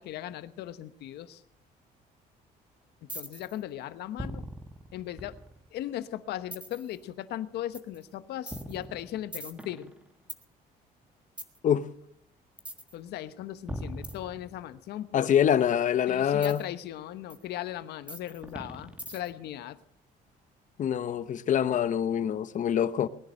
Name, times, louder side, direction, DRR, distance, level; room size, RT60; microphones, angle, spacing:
voice 1, 0.0-1.4 3.0-4.5 4.9-5.4 5.7-9.9 12.9-15.3 16.1-19.8, left 12 dB, 75° left, 1.1 m, -38 dB
sound 1, 3.1-3.6 4.2-5.8 6.5-6.9 7.7-8.0 8.5-10.4 11.4-11.6 12.6-12.9 13.7-14.8 16.4-16.6 17.3-17.4 18.1-19.5, right 1 dB, 5° right, 1.6 m, -40 dB
voice 2, 15.1-16.6 20.8-23.1, left 9 dB, 50° left, 0.9 m, -25 dB
20.0 x 10.5 x 6.6 m
cardioid pair, 110°, 17 cm